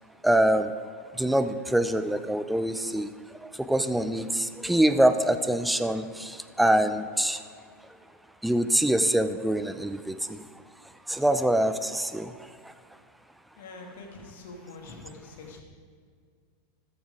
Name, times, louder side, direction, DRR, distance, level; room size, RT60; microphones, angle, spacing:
voice 1, 0.2-0.7 1.1-3.1 3.4-7.4 8.4-10.4 11.1-12.4 12.6-12.7, right 1 dB, 5° right, 10 dB, 0.6 m, -25 dB
voice 2, 13.6-15.6, left 3 dB, 65° left, 1 dB, 2.3 m, -44 dB
13.5 x 9.5 x 4.9 m, 2.1 s
figure-of-eight pair, 90°, 0 cm